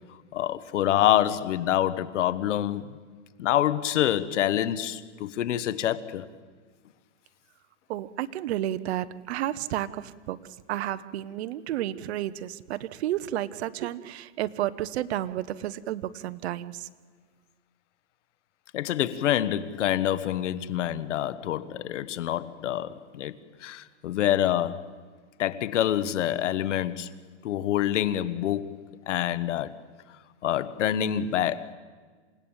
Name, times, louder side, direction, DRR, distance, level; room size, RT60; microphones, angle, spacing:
voice 1, 0.3-2.9 3.4-6.3 18.7-24.9 25.4-27.1 27.4-28.8 29.1-29.7 30.4-31.7, left 11 dB, 80° left, 1.3 m, -26 dB
voice 2, 7.9-16.9, right 13 dB, 60° right, 1.1 m, -31 dB
28.5 x 17.0 x 8.9 m
supercardioid pair, 160°, 36 cm